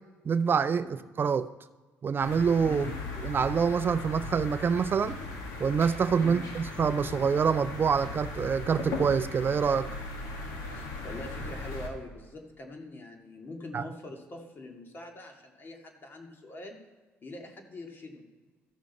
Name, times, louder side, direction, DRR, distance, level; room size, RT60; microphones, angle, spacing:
voice 1, 0.3-1.5 2.0-2.9 3.2-5.2 5.6-9.9 13.7-13.9, right 6 dB, 40° right, 0.4 m, -26 dB
sound 1, 2.2-11.9, left 3 dB, 85° left, 1.7 m, -38 dB
voice 2, 2.7-3.0 6.2-6.5 10.8-16.8 17.2-18.2, left 2 dB, 40° left, 2.1 m, -43 dB
14.5 x 6.2 x 4.1 m
supercardioid pair, 70°, 5 cm